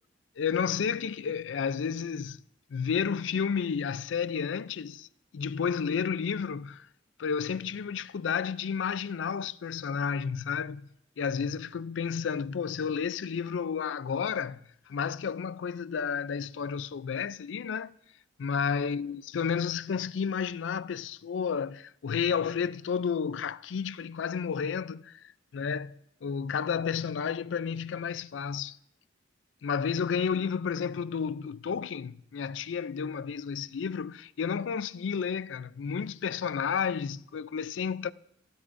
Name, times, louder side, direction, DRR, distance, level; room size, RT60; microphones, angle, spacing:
voice 1, 0.4-2.4 2.7-5.1 5.3-6.9 7.2-10.9 11.2-14.6 14.9-17.9 18.4-25.2 25.5-26.0 26.2-28.8 29.6-38.1, left 6 dB, 85° left, 0.4 m, -31 dB
28.0 x 13.5 x 2.6 m
head